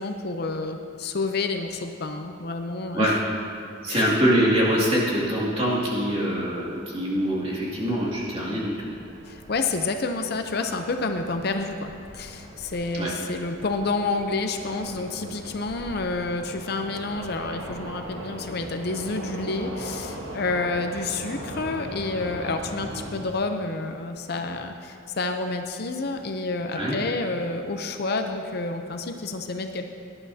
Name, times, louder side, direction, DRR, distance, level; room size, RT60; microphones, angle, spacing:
voice 1, 0.0-3.2 3.9-4.2 9.3-29.8, left 3 dB, 50° left, 5 dB, 0.6 m, -29 dB
voice 2, 3.8-8.9 12.9-13.1 26.7-27.0, equal, 30° right, -5 dB, 2.3 m, -24 dB
sound 1, 5.1-23.3, right 1 dB, 80° right, 1.4 m, -41 dB
18.0 x 10.5 x 2.8 m, 2.3 s
head